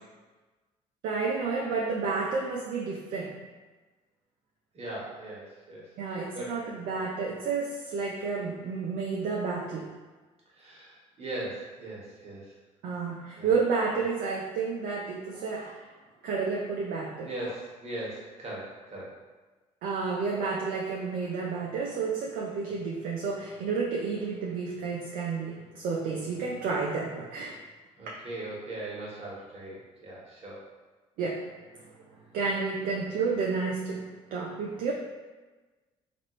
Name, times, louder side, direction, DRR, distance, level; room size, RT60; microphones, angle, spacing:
voice 1, 1.0-3.4 6.0-10.0 12.8-15.9 16.2-17.3 19.8-27.6 31.2-31.9 32.3-34.9, right 4 dB, 60° right, -2 dB, 0.5 m, -31 dB
voice 2, 4.7-5.9 6.3-6.6 10.6-12.5 13.4-13.5 17.2-19.1 28.0-30.6, right 1 dB, 40° right, -5 dB, 1.3 m, -39 dB
3.0 x 2.5 x 3.0 m, 1.3 s
hypercardioid pair, 55°, 17 cm